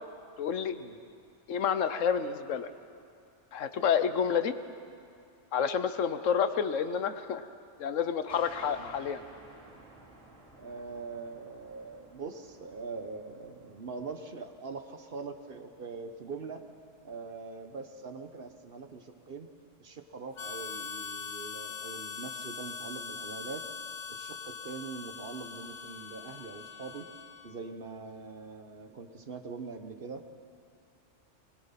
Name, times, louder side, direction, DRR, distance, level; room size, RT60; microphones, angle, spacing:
voice 1, 0.4-0.8 1.5-2.7 3.5-4.5 5.5-7.4 7.8-9.2, left 7 dB, 80° left, 11 dB, 1.2 m, -29 dB
sound 1, 8.3-17.5, right 2 dB, 65° right, 4.2 m, -56 dB
voice 2, 10.6-16.6 17.0-19.5 19.8-23.7 24.1-27.1 27.4-30.2, right 4 dB, 50° right, 7 dB, 1.2 m, -42 dB
Harmonica, 20.4-27.6, left 6 dB, 50° left, 0.6 m, -42 dB
22.0 x 20.5 x 5.8 m, 2.4 s
omnidirectional pair, 1.3 m